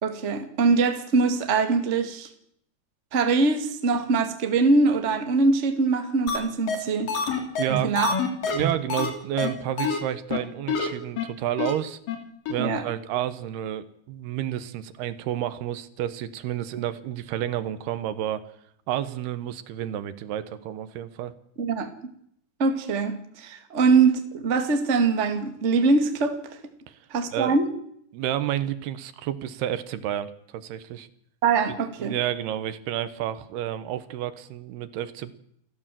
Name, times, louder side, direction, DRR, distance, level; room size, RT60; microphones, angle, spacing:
voice 1, 0.0-2.3 3.1-7.1 7.7-8.1 12.6-12.8 21.6-21.9 22.6-26.4 27.1-27.7 31.4-32.1, right 4 dB, 30° right, 7 dB, 1.4 m, -23 dB
sound 1, 6.3-6.4 6.7-6.8 7.1-9.1 9.4-9.5 9.8-10.0 10.3-10.4 10.7-10.9 11.2-11.3 11.6-11.7 12.1-12.2 12.5-12.6, left 5 dB, 60° left, 4.4 m, -26 dB
voice 2, 7.6-8.0 8.5-12.0 12.5-18.4 18.9-21.3 26.9-27.0 27.3-27.6 28.1-31.1 32.0-35.3, right 11 dB, 80° right, 13 dB, 3.1 m, -30 dB
29.0 x 14.0 x 7.6 m, 0.71 s
omnidirectional pair, 4.6 m